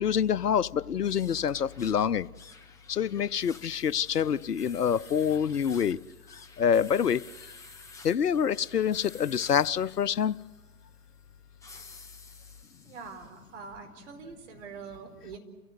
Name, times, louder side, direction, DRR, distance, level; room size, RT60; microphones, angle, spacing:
voice 1, 0.0-2.3 2.9-6.0 6.6-7.2 8.0-10.4, left 8 dB, 85° left, 18 dB, 0.7 m, -26 dB
sound 1, 0.9-13.4, left 3 dB, 5° left, 1.0 m, -52 dB
voice 2, 12.8-15.4, right 5 dB, 50° right, 4 dB, 4.6 m, -44 dB
29.5 x 15.5 x 9.4 m, 1.2 s
figure-of-eight pair, 125°, 46 cm